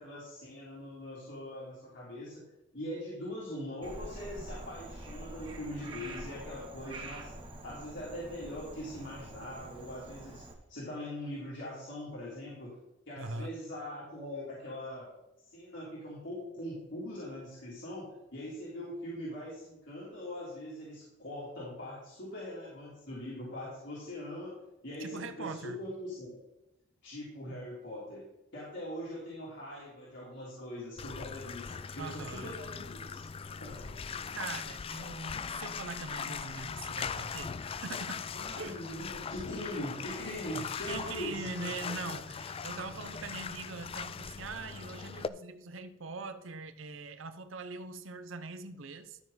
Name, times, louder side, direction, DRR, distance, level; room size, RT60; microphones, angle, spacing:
voice 1, 0.0-2.4 2.7-7.3 7.6-10.4 10.7-12.7 13.1-15.1 15.5-24.5 24.8-26.4 27.0-28.2 28.5-33.2 33.6-33.9 34.2-34.3 38.3-42.1, left 1 dB, 60° left, -7 dB, 3.4 m, -42 dB
Frog, 3.8-10.5, right 2 dB, 25° right, 1.6 m, -46 dB
voice 2, 13.2-13.6 25.0-25.8 32.0-32.5 34.3-38.9 40.9-49.2, right 3 dB, 70° right, 10 dB, 0.8 m, -42 dB
Bathtub (filling or washing), 31.0-45.3, left 6 dB, 30° left, 0.3 m, -40 dB
13.0 x 6.9 x 4.1 m, 0.90 s
head